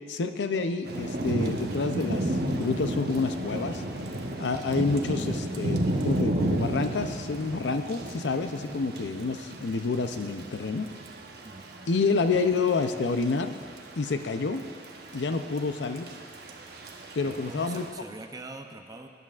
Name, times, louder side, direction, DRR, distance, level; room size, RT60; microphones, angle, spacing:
voice 1, 0.1-3.8 4.4-10.9 11.9-13.5 14.0-14.6 15.1-16.1 17.1-17.9, left 4 dB, 85° left, 8 dB, 0.5 m, -28 dB
Thunder / Rain, 0.8-17.9, right 1 dB, 65° right, 0.9 m, -33 dB
voice 2, 11.4-12.0 17.2-19.1, right 2 dB, 20° right, 5 dB, 0.6 m, -43 dB
18.5 x 10.5 x 2.4 m, 2.2 s
head